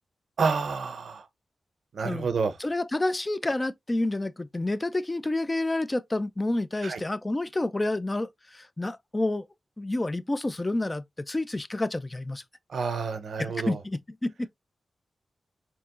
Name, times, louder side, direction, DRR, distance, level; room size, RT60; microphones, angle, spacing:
voice 1, 0.4-1.2 1.9-2.5 6.8-7.0 12.7-13.8, right 5 dB, 80° right, 0.6 m, -29 dB
voice 2, 2.6-9.5 9.8-12.4 13.4-14.5, left 2 dB, 20° left, 0.3 m, -29 dB
4.5 x 2.9 x 2.5 m
wide cardioid pair, 95°, 0 cm